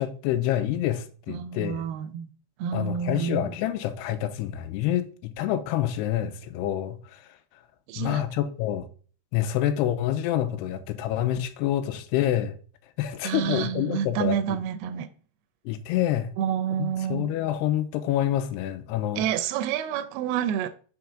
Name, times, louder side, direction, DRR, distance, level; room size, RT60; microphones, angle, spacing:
voice 1, 0.0-1.8 2.7-7.2 8.0-8.9 9.3-12.6 13.0-14.6 15.7-16.3 16.8-19.2, left 11 dB, 90° left, 2.7 m, -27 dB
voice 2, 1.3-2.3 2.6-3.5 7.9-8.2 13.2-15.1 16.4-17.3 19.2-20.7, right 9 dB, 80° right, 2.4 m, -29 dB
6.2 x 5.8 x 3.7 m
omnidirectional pair, 4.6 m